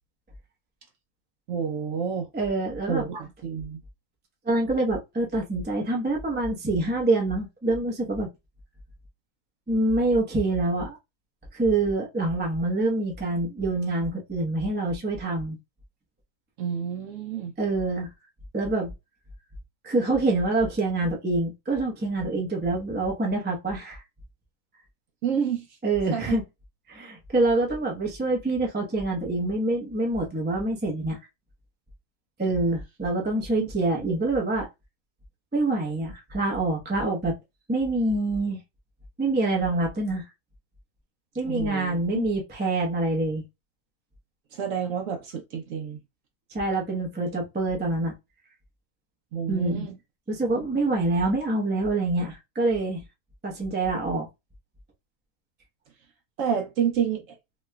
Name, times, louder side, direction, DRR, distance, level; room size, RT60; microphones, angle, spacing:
voice 1, 1.5-2.3 2.9-3.8 16.6-17.5 25.2-25.6 26.1-26.4 33.6-33.7 41.4-42.0 44.5-46.0 49.3-50.0 56.4-57.4, right 7 dB, 65° right, 0.9 m, -29 dB
voice 2, 2.3-3.0 4.5-8.3 9.7-11.0 11.5-15.6 17.6-18.1 18.5-18.9 19.8-24.0 25.8-26.4 26.9-31.2 32.4-34.7 35.5-37.3 37.7-38.6 39.2-40.2 41.4-43.4 46.5-48.1 49.5-49.9 50.3-53.0 53.4-54.3, right 2 dB, 15° right, 0.4 m, -26 dB
3.0 x 3.0 x 2.2 m
omnidirectional pair, 1.7 m